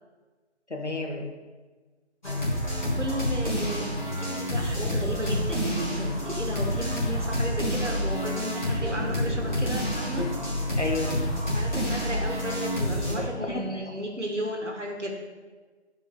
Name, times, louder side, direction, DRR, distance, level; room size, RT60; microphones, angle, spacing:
voice 1, 0.7-1.3 10.2-10.3 10.8-11.2 13.2-13.9, left 2 dB, 80° left, 0 dB, 1.8 m, -32 dB
sound 1, 2.2-13.2, equal, 40° left, 2.5 m, -28 dB
voice 2, 2.2-10.3 11.5-15.1, equal, 90° right, 1 dB, 2.0 m, -34 dB
12.5 x 4.9 x 3.8 m, 1.4 s
figure-of-eight pair, 165°, 35 cm